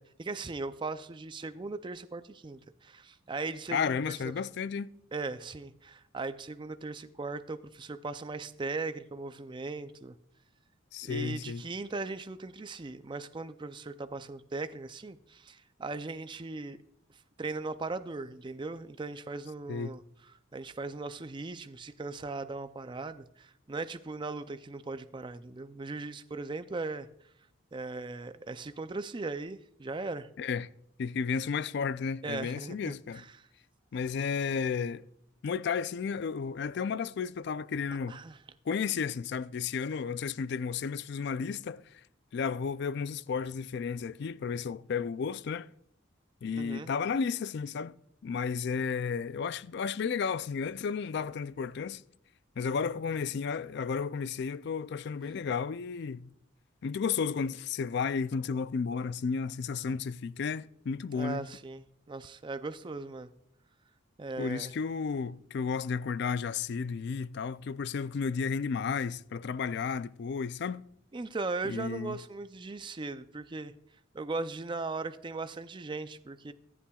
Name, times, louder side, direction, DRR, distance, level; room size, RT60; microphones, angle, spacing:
voice 1, 0.0-4.2 5.1-10.2 11.0-16.8 17.4-20.0 20.5-27.1 27.7-30.3 32.2-33.5 38.1-38.4 46.5-46.9 61.1-63.3 64.2-64.7 71.1-73.7 74.1-76.5, right 3 dB, 25° right, 0.4 m, -38 dB
voice 2, 3.7-4.9 10.9-11.6 19.7-19.9 30.4-30.7 31.0-33.2 33.9-35.0 35.4-38.2 38.7-41.8 42.3-45.7 46.4-48.0 48.2-52.0 52.6-56.3 56.8-61.4 64.4-70.8 71.6-72.2, left 6 dB, 55° left, 0.4 m, -33 dB
24.5 x 8.5 x 2.3 m
head